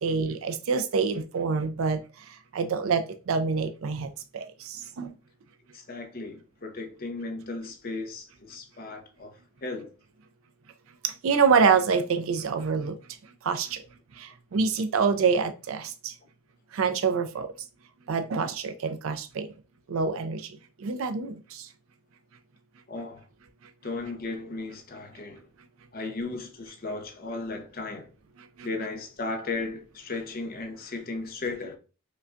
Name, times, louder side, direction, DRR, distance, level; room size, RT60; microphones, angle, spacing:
voice 1, 0.0-2.0 2.5-4.1 4.3-5.1 11.0-13.0 13.4-13.8 14.2-16.1 16.7-17.5 18.1-19.5 19.9-20.5 20.8-21.7, right 5 dB, 70° right, 0.4 m, -26 dB
voice 2, 5.7-9.9 22.9-23.3 23.8-25.5 25.9-28.1 28.6-31.8, left 3 dB, 40° left, 0.6 m, -36 dB
5.1 x 2.2 x 2.5 m
head